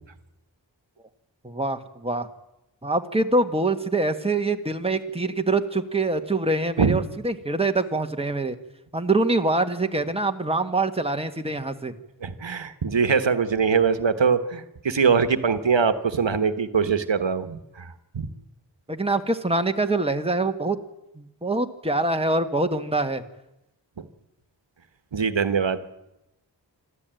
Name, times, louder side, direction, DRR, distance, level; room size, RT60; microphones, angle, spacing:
voice 1, 1.4-2.3 2.8-8.5 8.9-11.9 18.9-20.8 21.1-23.2, right 2 dB, 15° right, 6 dB, 1.6 m, -24 dB
voice 2, 12.2-18.3 24.0-24.1 25.1-25.8, right 5 dB, 75° right, 11 dB, 1.4 m, -23 dB
25.5 x 14.0 x 9.1 m, 0.91 s
wide cardioid pair, 70°, 44 cm